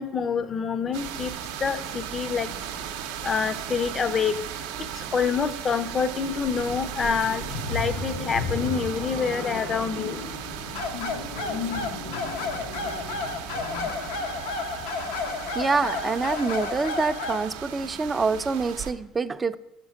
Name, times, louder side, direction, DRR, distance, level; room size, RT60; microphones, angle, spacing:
voice 1, 0.0-1.3 1.6-2.5 3.2-4.4 4.8-10.2, left 6 dB, 35° left, 13 dB, 0.5 m, -27 dB
sound 1, 0.9-18.9, right 9 dB, 80° right, 0.6 m, -37 dB
sound 2, 6.5-13.9, left 3 dB, 70° left, 1.4 m, -35 dB
sound 3, 10.7-17.5, left 4 dB, 85° left, 0.8 m, -32 dB
voice 2, 15.5-19.6, right 4 dB, 25° right, 13 dB, 0.4 m, -26 dB
6.1 x 5.2 x 4.9 m, 0.85 s
supercardioid pair, 85°, 0 cm